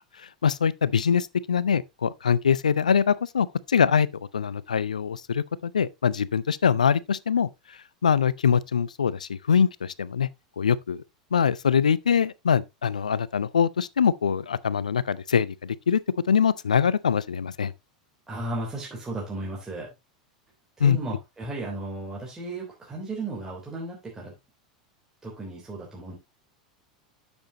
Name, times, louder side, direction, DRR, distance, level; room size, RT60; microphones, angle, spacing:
voice 1, 0.4-4.1 4.3-7.5 8.0-10.3 10.6-11.0 11.3-16.0 16.3-17.7 20.8-21.0, left 7 dB, 75° left, 0.5 m, -23 dB
voice 2, 18.3-19.9 20.8-24.3 25.2-26.2, right 2 dB, 15° right, 3.4 m, -35 dB
10.5 x 7.1 x 2.9 m
figure-of-eight pair, 85°, 4 cm